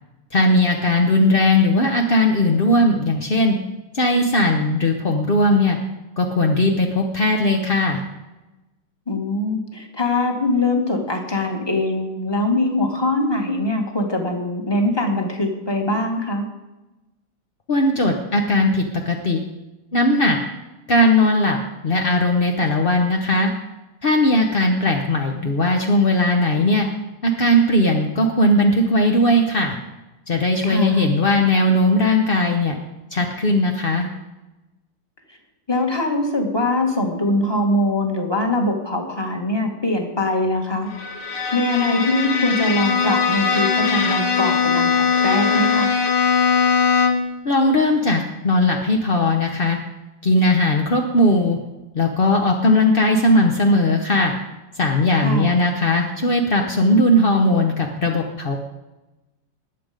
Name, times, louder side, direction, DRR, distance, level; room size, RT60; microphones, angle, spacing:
voice 1, 0.3-3.6 3.9-5.8 6.2-8.0 17.7-19.4 19.9-20.4 20.9-21.6 21.8-23.5 24.0-26.9 27.2-29.7 30.3-32.8 33.1-34.1 47.4-49.8 50.2-51.6 51.9-54.3 54.7-58.6, left 1 dB, 45° left, 2 dB, 0.7 m, -18 dB
voice 2, 9.1-16.4 30.6-31.0 35.7-40.9 41.5-45.9 55.2-55.6, left 2 dB, 10° left, 2 dB, 1.7 m, -22 dB
Bowed string instrument, 40.9-47.4, left 6 dB, 75° left, 2.2 m, -20 dB
20.0 x 7.8 x 5.2 m, 1.0 s
omnidirectional pair, 2.4 m